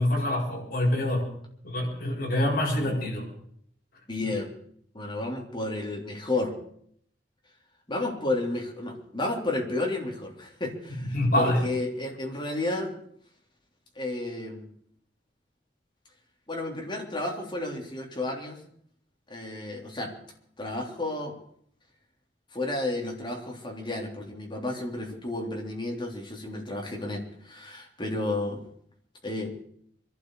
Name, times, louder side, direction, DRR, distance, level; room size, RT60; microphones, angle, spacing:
voice 1, 0.0-1.4 1.6-3.3 10.9-11.6, left 1 dB, 60° left, -3 dB, 7.4 m, -26 dB
voice 2, 2.8-3.1 4.1-4.5 4.9-6.5 7.9-13.0 14.0-14.7 16.5-18.6 19.3-20.2 20.6-21.4 22.5-28.6 29.2-29.5, left 2 dB, 30° left, 0 dB, 3.4 m, -32 dB
25.5 x 12.0 x 4.9 m, 0.67 s
head